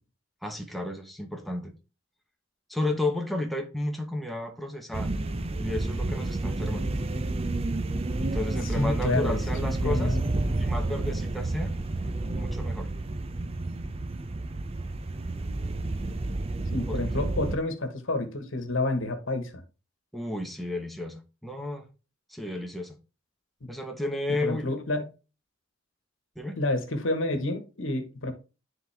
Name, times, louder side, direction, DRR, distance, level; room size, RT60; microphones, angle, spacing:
voice 1, 0.4-1.7 2.7-5.1 5.6-6.9 8.2-10.2 10.5-11.8 12.4-12.9 16.9-17.2 20.1-21.9 22.3-23.0 23.7-24.7 26.4-26.6, left 1 dB, ahead, 0.9 m, -33 dB
sound 1, 4.9-17.6, right 2 dB, 30° right, 0.5 m, -30 dB
voice 2, 8.7-10.2 16.7-19.6 23.6-23.7 24.3-25.1 26.6-28.3, left 2 dB, 75° left, 1.3 m, -29 dB
10.0 x 3.9 x 3.4 m
head